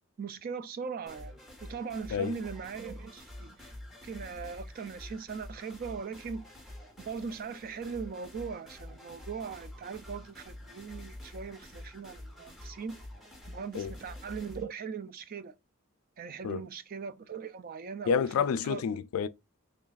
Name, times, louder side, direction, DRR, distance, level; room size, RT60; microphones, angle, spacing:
voice 1, 0.2-1.3 1.6-3.7 4.0-6.5 7.0-13.0 13.5-15.5 16.2-18.8, right 5 dB, 45° right, 0.4 m, -40 dB
sound 1, 1.1-14.6, left 1 dB, ahead, 1.0 m, -47 dB
voice 2, 18.1-19.3, left 6 dB, 80° left, 0.3 m, -29 dB
3.3 x 2.3 x 3.9 m
head